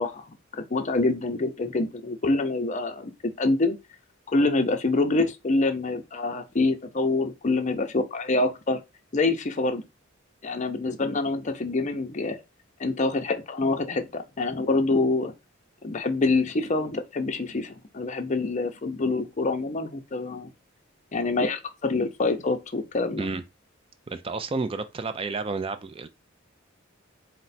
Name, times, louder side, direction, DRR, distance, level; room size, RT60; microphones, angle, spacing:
voice 1, 0.0-3.8 4.3-8.8 9.1-9.8 10.4-12.4 12.8-15.3 15.8-20.5 21.1-23.3, left 3 dB, 35° left, 0.6 m, -26 dB
voice 2, 24.1-26.1, right 3 dB, 25° right, 0.4 m, -31 dB
4.4 x 2.1 x 4.0 m
head